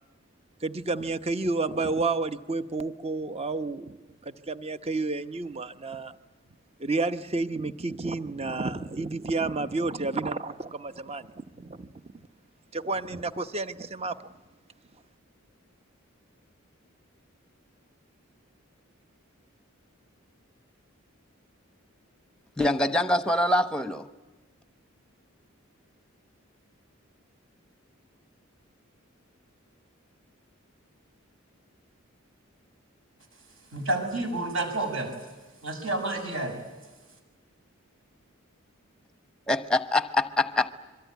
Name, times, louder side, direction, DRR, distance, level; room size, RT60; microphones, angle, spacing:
voice 1, 0.6-6.1 6.8-11.9 12.7-14.2, right 3 dB, 30° right, 0.9 m, -30 dB
voice 2, 22.6-24.1 39.5-40.7, left 1 dB, 5° left, 1.0 m, -24 dB
voice 3, 33.7-35.2 35.6-36.6, right 2 dB, 65° right, 6.5 m, -29 dB
26.0 x 23.0 x 9.3 m
head